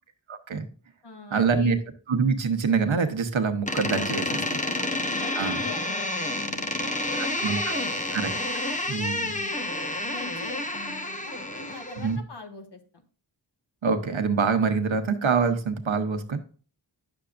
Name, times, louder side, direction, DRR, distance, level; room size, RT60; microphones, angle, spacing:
voice 1, 0.3-0.7 1.3-1.8 2.1-4.2 5.4-5.6 7.2-7.8 8.1-8.3 8.9-9.3 12.0-12.2 13.8-16.4, right 5 dB, 85° right, 7 dB, 1.1 m, -25 dB
voice 2, 1.0-1.8 4.2-4.8 5.1-8.3 9.1-9.6 10.1-13.0, left 4 dB, 60° left, 4 dB, 1.6 m, -43 dB
Door, 3.7-12.2, left 1 dB, 15° left, 0.9 m, -29 dB
10.5 x 6.9 x 2.5 m, 0.40 s
wide cardioid pair, 80°, 45 cm